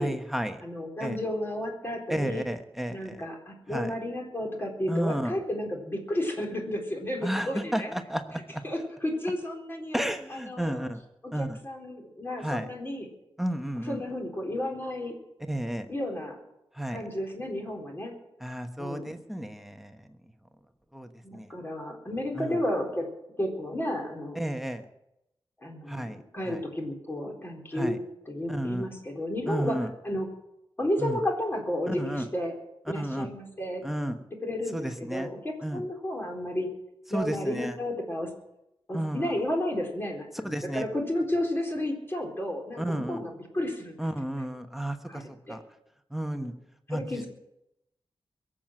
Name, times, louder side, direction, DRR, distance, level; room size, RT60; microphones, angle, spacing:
voice 1, 0.0-0.6 1.0-1.2 2.1-3.2 3.7-3.9 4.9-5.4 7.2-8.6 9.9-11.0 11.3-11.6 12.4-12.7 13.4-14.0 15.5-15.9 16.7-17.0 18.4-20.1 20.9-21.5 22.3-22.6 24.3-24.8 25.9-26.2 26.5-26.6 27.7-28.0 28.5-28.9 29.5-29.9 31.0-31.2 31.9-32.3 32.9-33.3 33.8-34.2 34.7-35.3 35.6-35.8 37.1-37.8 38.9-39.3 40.4-40.9 42.8-43.2 44.0-45.6 46.1-46.5 46.9-47.2, right 1 dB, 5° right, 6 dB, 1.2 m, -32 dB
voice 2, 0.6-2.4 2.9-7.9 8.6-10.0 10.3-10.9 11.2-13.1 13.9-15.2 15.9-16.4 16.9-18.2 18.8-19.1 21.2-23.1 23.4-24.4 25.6-28.0 28.3-30.3 30.8-32.6 32.9-33.9 34.4-36.7 37.1-38.3 38.9-44.0 45.1-45.6 46.3-46.5 46.9-47.3, left 1 dB, 25° left, 1 dB, 4.0 m, -32 dB
22.5 x 7.5 x 7.7 m, 0.85 s
wide cardioid pair, 105°, 9 cm